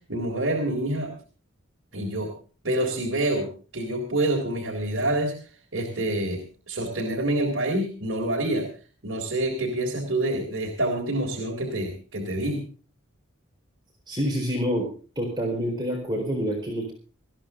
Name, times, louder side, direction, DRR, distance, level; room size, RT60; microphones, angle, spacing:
voice 1, 0.1-1.1 1.9-2.3 2.6-3.5 3.7-5.3 5.7-8.7 9.0-12.6, right 1 dB, 60° right, -2 dB, 3.7 m, -27 dB
voice 2, 14.1-14.9 15.2-16.9, equal, 20° right, 0 dB, 4.2 m, -27 dB
20.0 x 15.0 x 3.7 m, 0.39 s
head